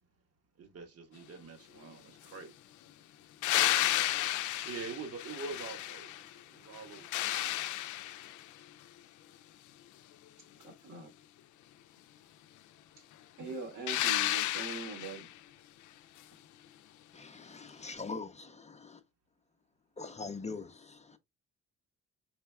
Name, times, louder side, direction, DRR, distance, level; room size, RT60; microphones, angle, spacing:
voice 1, 0.6-2.6 4.2-7.8, right 4 dB, 55° right, 1.4 m, -45 dB
sound 1, 3.4-6.3 6.7-8.5 13.9-15.3 17.9-18.0, left 14 dB, 80° left, 0.5 m, -32 dB
voice 2, 10.6-11.1 13.4-15.3, right 4 dB, 80° right, 2.2 m, -42 dB
voice 3, 17.1-19.0 20.0-21.2, left 4 dB, 20° left, 0.6 m, -43 dB
4.9 x 3.4 x 2.2 m
cardioid pair, 90°, 30 cm